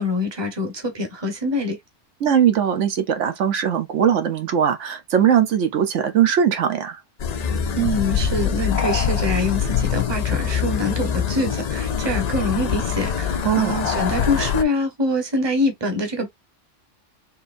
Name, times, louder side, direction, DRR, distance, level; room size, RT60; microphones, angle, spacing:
voice 1, 0.0-1.8 7.8-16.3, left 1 dB, 20° right, 1.1 m, -24 dB
voice 2, 2.2-7.0 13.4-13.8, right 8 dB, 75° right, 1.1 m, -20 dB
sound 1, 7.2-14.6, left 8 dB, 60° left, 0.4 m, -24 dB
4.3 x 3.0 x 2.5 m
omnidirectional pair, 1.3 m